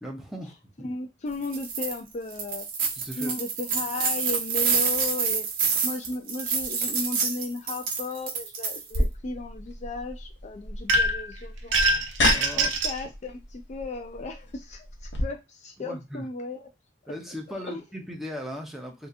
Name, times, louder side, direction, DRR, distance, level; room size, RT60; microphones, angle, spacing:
voice 1, 0.0-0.9 2.9-3.3 12.3-12.7 15.8-16.3 17.1-19.1, equal, ahead, 0 dB, 0.7 m, -38 dB
voice 2, 0.8-2.7 3.2-5.5 5.8-12.1 12.6-16.6 17.5-17.8, left 3 dB, 40° left, 4 dB, 0.4 m, -35 dB
sound 1, 1.4-1.9 2.3-9.0, right 5 dB, 50° right, 0.9 m, -27 dB
sound 2, 8.9-15.2, left 2 dB, 65° left, 0.9 m, -31 dB
sound 3, 10.9-11.3 11.7-13.0, right 2 dB, 75° right, 0.6 m, -23 dB
3.4 x 2.8 x 2.4 m, 0.23 s
head